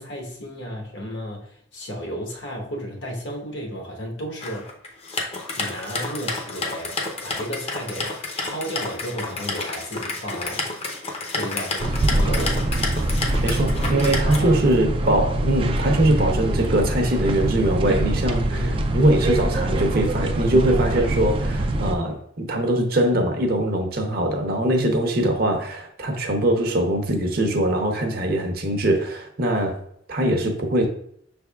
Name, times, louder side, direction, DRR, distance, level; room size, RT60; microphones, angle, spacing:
voice 1, 0.0-4.7 5.5-10.7 11.3-12.6 14.2-14.6 16.0-16.3 18.5-18.9, equal, 65° left, 1.0 m, -33 dB
sound 1, 4.4-14.7, left 3 dB, 30° left, 0.6 m, -30 dB
sound 2, 11.8-22.0, right 1 dB, 30° right, 0.3 m, -24 dB
voice 2, 13.4-18.6 18.9-29.8 30.1-30.9, right 1 dB, 50° right, 0.7 m, -22 dB
6.2 x 3.4 x 2.3 m
head